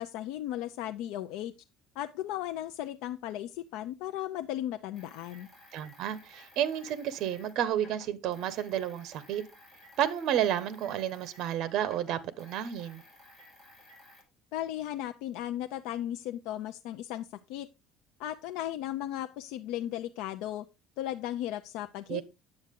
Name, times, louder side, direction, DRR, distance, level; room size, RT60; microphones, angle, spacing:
voice 1, 0.0-1.5 2.0-5.5 14.5-17.7 18.2-20.6 21.0-22.2, left 12 dB, 85° left, 0.5 m, -36 dB
sound 1, 4.9-11.6 11.8-14.2, left 1 dB, ahead, 5.6 m, -56 dB
voice 2, 5.7-9.4 10.0-13.0 22.1-22.2, right 10 dB, 55° right, 1.1 m, -31 dB
9.6 x 7.7 x 3.7 m
cardioid pair, 160°, 0 cm